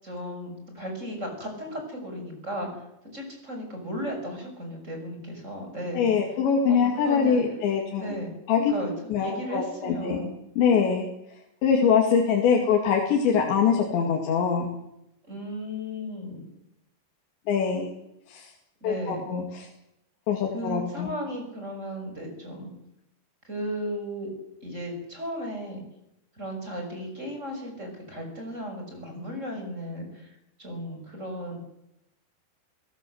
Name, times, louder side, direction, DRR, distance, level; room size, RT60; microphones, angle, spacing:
voice 1, 0.0-2.8 3.1-6.1 6.7-7.4 8.0-8.9 9.2-10.4 15.2-16.5 18.8-19.2 19.5-19.7 20.5-22.7 23.4-24.3 24.6-25.8 26.3-31.6, equal, 15° right, 3 dB, 6.4 m, -35 dB
voice 2, 5.9-8.2 8.5-8.6 9.1-10.2 10.6-11.1 11.6-14.7 17.5-17.9 18.3-18.5 18.8-19.7 20.3-21.1, left 6 dB, 70° left, 0 dB, 4.6 m, -23 dB
29.0 x 17.5 x 8.0 m, 0.84 s
omnidirectional pair, 5.4 m